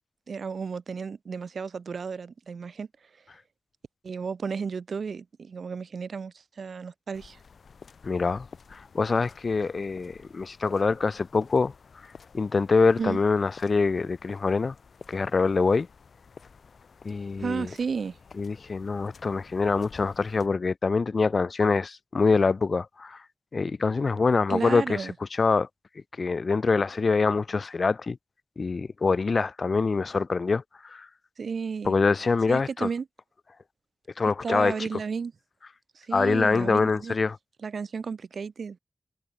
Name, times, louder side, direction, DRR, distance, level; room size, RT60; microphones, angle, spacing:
voice 1, 0.3-2.9 4.0-7.4 13.0-13.2 17.4-18.2 24.5-25.1 31.4-31.9 32.5-33.0 34.4-35.3 35.9-37.2 37.6-38.8, right 5 dB, 80° right, 1.3 m, -33 dB
sound 1, 7.1-20.5, left 5 dB, 80° left, 4.0 m, -51 dB
voice 2, 8.0-11.7 12.3-14.7 15.1-15.9 17.0-17.7 18.4-23.2 23.5-25.7 26.2-28.2 28.6-31.1 31.8-32.9 34.2-34.9 36.1-37.4, left 4 dB, 65° left, 0.7 m, -25 dB
cardioid pair, 45°, 0 cm